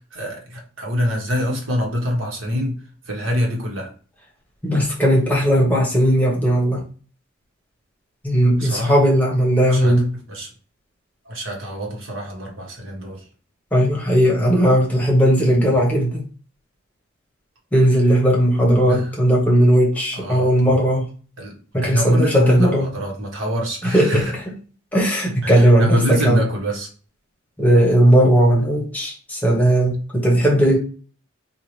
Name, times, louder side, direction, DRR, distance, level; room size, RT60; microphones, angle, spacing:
voice 1, 0.1-3.9 8.6-9.0 9.7-10.5 11.2-13.3 18.8-19.2 20.1-20.5 21.4-21.5 21.8-24.3 25.4-26.9, left 1 dB, 70° right, 0 dB, 1.3 m, -25 dB
voice 2, 4.6-6.8 8.2-10.0 13.7-16.2 17.7-21.0 21.7-22.9 23.9-24.2 24.9-26.4 27.6-30.8, right 1 dB, 10° left, -2 dB, 1.1 m, -17 dB
4.6 x 2.4 x 3.2 m, 0.39 s
head